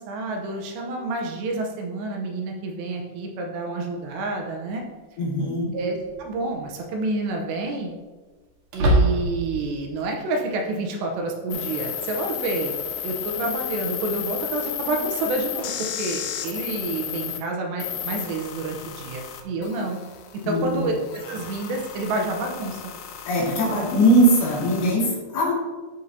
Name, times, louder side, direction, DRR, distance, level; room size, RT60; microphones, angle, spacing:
voice 1, 0.0-4.8 5.7-7.9 8.7-12.8 13.0-20.0 20.5-22.8, right 2 dB, 80° right, 2 dB, 2.8 m, -28 dB
sound 1, 4.1-4.2 6.0-6.4 6.8-6.9 8.7-9.6, right 1 dB, 60° right, 2.4 m, -22 dB
voice 2, 5.2-5.8 20.4-20.8 23.2-25.5, right 1 dB, 65° left, -5 dB, 3.7 m, -20 dB
sound 2, 11.5-17.4 17.8-24.9, left 10 dB, 85° left, 3.2 m, -33 dB
12.5 x 5.4 x 2.8 m, 1.3 s
omnidirectional pair, 5.3 m